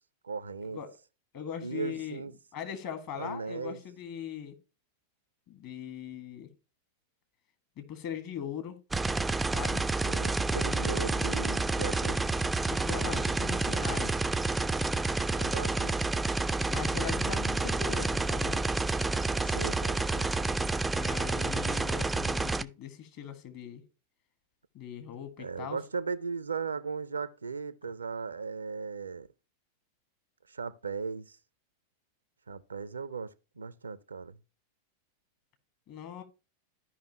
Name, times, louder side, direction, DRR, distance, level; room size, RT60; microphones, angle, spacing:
voice 1, 0.2-0.8 1.6-2.3 3.2-3.8 10.0-12.2 15.3-16.0 19.3-20.5 25.4-29.3 30.5-31.4 32.5-34.4, right 5 dB, 75° right, 0.4 m, -37 dB
voice 2, 1.3-2.2 2.5-4.6 5.5-6.5 7.8-8.8 9.5-9.9 10.5-11.1 11.9-12.1 12.7-14.2 16.7-18.6 20.9-23.8 24.7-25.8 35.9-36.2, left 8 dB, 45° left, 1.5 m, -40 dB
sound 1, 8.9-22.6, right 3 dB, 10° right, 0.3 m, -29 dB
13.5 x 5.3 x 2.8 m
figure-of-eight pair, 90°, 0 cm